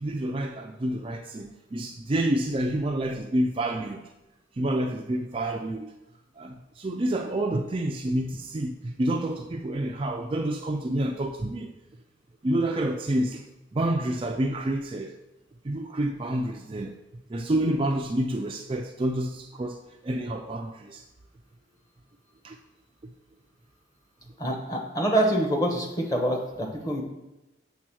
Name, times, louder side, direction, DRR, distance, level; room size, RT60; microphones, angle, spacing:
voice 1, 0.0-4.0 4.6-5.9 6.4-11.7 12.4-13.4 13.7-15.1 15.6-16.9 17.3-19.8 20.0-21.0 22.4-22.6, right 1 dB, 30° right, 0.4 m, -28 dB
voice 2, 24.4-27.0, right 1 dB, 20° left, 1.1 m, -26 dB
7.4 x 3.5 x 6.2 m
head